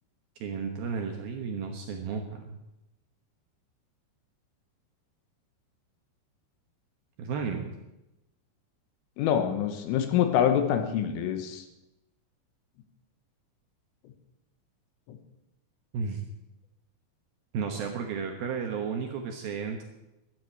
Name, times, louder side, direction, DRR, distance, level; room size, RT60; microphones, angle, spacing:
voice 1, 0.4-2.6 7.2-7.7 15.9-16.2 17.5-19.8, right 6 dB, 70° right, 3 dB, 2.4 m, -33 dB
voice 2, 9.2-11.6 15.1-15.2, left 9 dB, 85° left, 7 dB, 3.9 m, -25 dB
13.0 x 9.4 x 8.7 m, 0.95 s
omnidirectional pair, 5.7 m